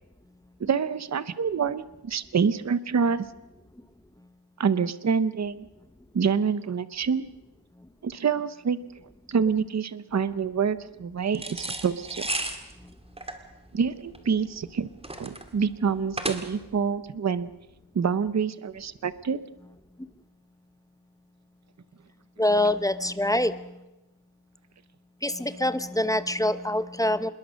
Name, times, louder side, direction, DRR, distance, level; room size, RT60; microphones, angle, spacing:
voice 1, 0.6-3.3 4.6-5.7 6.1-7.3 8.0-8.8 9.3-12.2 13.7-14.9 15.2-17.5 17.9-19.4, right 6 dB, 40° right, 15 dB, 0.8 m, -26 dB
sound 1, 11.3-16.8, right 1 dB, 15° right, 2.2 m, -34 dB
voice 2, 22.4-23.7 25.2-27.3, left 1 dB, 10° left, 13 dB, 0.8 m, -25 dB
26.0 x 21.5 x 6.3 m, 0.96 s
wide cardioid pair, 125°, 42 cm